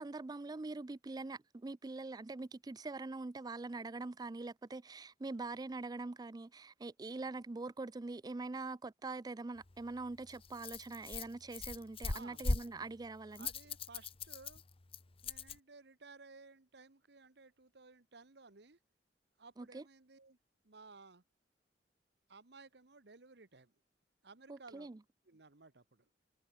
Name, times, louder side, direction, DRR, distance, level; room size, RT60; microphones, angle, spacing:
voice 1, 0.0-13.5 19.6-19.8 24.5-25.0, right 3 dB, 20° right, 0.4 m, -44 dB
Rattle, 9.6-15.6, left 3 dB, 35° left, 0.8 m, -41 dB
voice 2, 12.1-12.5 13.4-14.6 15.2-18.8 19.4-20.4 20.6-21.2 22.3-23.7 24.2-24.9 25.3-26.1, right 4 dB, 70° right, 1.4 m, -57 dB
head